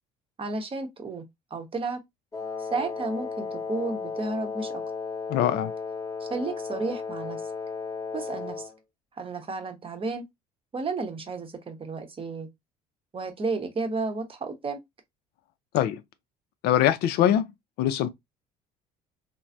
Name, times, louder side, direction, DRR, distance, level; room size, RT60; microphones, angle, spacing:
voice 1, 0.4-1.2 1.5-2.0 2.6-4.8 6.2-7.4 8.1-8.7 9.2-10.2 10.7-12.5 13.1-14.8, right 3 dB, 30° right, 0.8 m, -32 dB
Wind instrument woodwind instrument, 2.3-8.8, left 5 dB, 20° left, 0.7 m, -34 dB
voice 2, 5.3-5.7 15.7-16.0 16.6-17.5 17.8-18.1, left 11 dB, 60° left, 0.4 m, -22 dB
3.1 x 2.0 x 2.5 m
hypercardioid pair, 60°, 19 cm